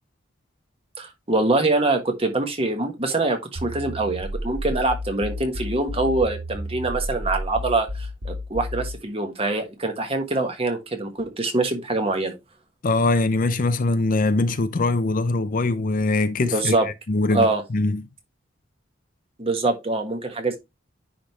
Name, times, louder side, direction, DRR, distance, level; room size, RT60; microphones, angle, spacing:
voice 1, 1.0-12.3 16.4-16.9 17.3-17.6 19.4-20.6, right 2 dB, 30° right, 1.4 m, -24 dB
sound 1, 3.6-9.0, left 1 dB, 75° right, 2.4 m, -32 dB
voice 2, 12.8-16.8 17.1-18.0, left 2 dB, 45° left, 0.5 m, -22 dB
10.0 x 3.6 x 3.0 m
head